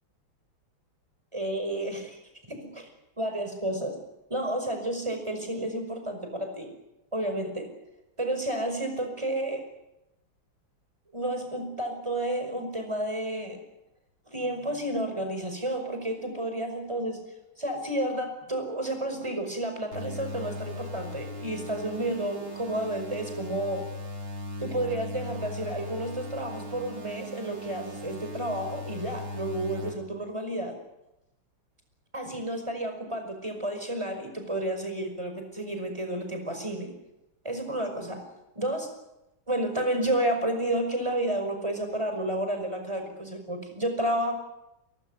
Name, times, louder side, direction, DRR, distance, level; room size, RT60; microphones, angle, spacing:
voice 1, 1.3-2.2 2.5-2.9 3.2-4.0 4.3-6.7 7.1-7.7 8.2-9.6 11.1-13.6 14.3-17.2 17.6-23.8 24.6-30.8 32.1-36.9 37.4-38.2 38.6-38.9 39.5-44.3, right 1 dB, 15° right, 5 dB, 5.4 m, -31 dB
sound 1, 19.9-29.9, left 1 dB, 65° right, 4.7 m, -38 dB
23.0 x 20.5 x 9.6 m, 0.94 s
omnidirectional pair, 2.4 m